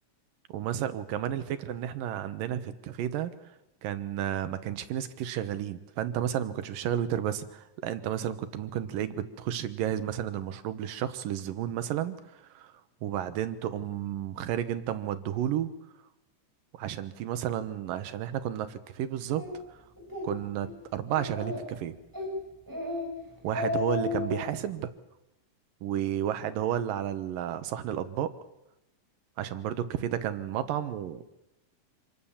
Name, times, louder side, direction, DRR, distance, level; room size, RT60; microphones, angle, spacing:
voice 1, 0.5-3.3 3.8-12.7 13.0-15.7 16.7-19.4 19.7-19.8 20.2-21.9 23.4-24.9 25.8-28.3 29.4-31.2, right 10 dB, 85° right, 11 dB, 2.9 m, -32 dB
Speech, 19.4-19.5 20.0-20.3 20.6-20.7 21.1-21.7 22.1-22.3 22.7-23.1 23.4-24.4, left 3 dB, 5° right, 7.2 m, -33 dB
26.5 x 19.0 x 7.3 m, 0.92 s
omnidirectional pair, 3.8 m